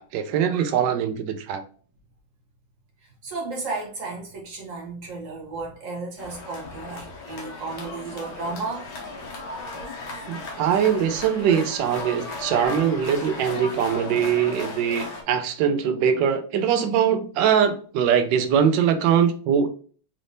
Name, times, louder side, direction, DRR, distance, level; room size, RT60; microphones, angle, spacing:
voice 1, 0.0-1.6 10.3-19.7, right 8 dB, 70° right, 1.1 m, -22 dB
voice 2, 3.0-9.2, right 3 dB, 45° right, 1.2 m, -34 dB
sound 1, 6.2-15.2, left 3 dB, 60° left, 1.3 m, -35 dB
4.1 x 3.4 x 2.6 m
omnidirectional pair, 2.3 m